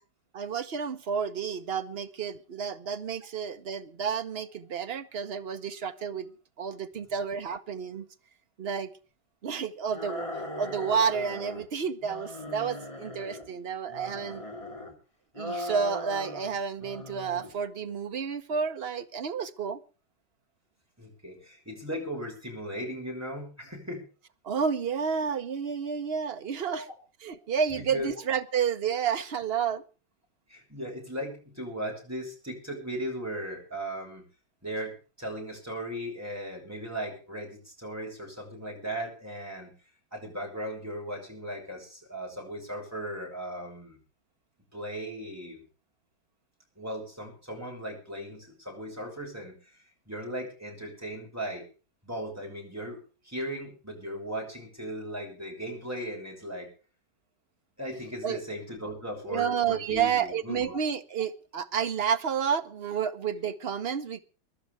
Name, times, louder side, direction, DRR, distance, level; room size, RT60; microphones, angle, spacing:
voice 1, 0.3-6.3 6.6-8.1 8.6-8.9 9.4-10.2 10.6-14.4 15.4-19.8 24.4-26.9 27.2-29.8 58.2-58.4 59.2-64.2, right 7 dB, 45° right, 0.8 m, -30 dB
sound 1, 9.9-11.7 12.0-13.5 13.9-14.9 15.3-16.5 16.8-17.5, left 1 dB, 15° left, 2.9 m, -39 dB
voice 2, 21.0-24.0 26.7-26.9 27.7-28.1 30.5-34.2 34.6-39.7 40.1-44.0 44.7-45.6 46.8-51.6 52.0-53.0 53.2-56.7 57.8-60.8, equal, 5° right, 6.3 m, -37 dB
24.0 x 12.0 x 3.4 m
omnidirectional pair, 2.1 m